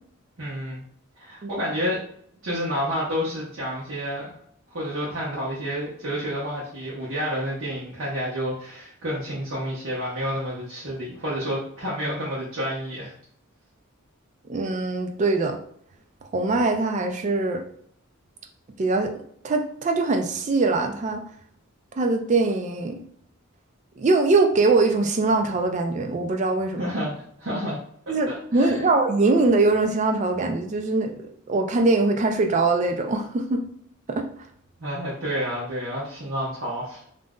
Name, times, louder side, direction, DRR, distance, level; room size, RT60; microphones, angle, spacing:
voice 1, 0.4-0.8 1.2-2.0 2.4-4.3 4.7-13.1 26.8-27.8 28.1-28.2 28.5-28.9 34.8-37.0, equal, 65° right, -7 dB, 0.8 m, -29 dB
voice 2, 14.5-15.6 16.3-17.6 18.8-19.1 19.4-21.2 22.0-23.0 24.0-26.9 28.1-33.6 34.1-34.3, right 3 dB, 35° right, 5 dB, 0.3 m, -22 dB
2.5 x 2.0 x 3.5 m, 0.65 s
head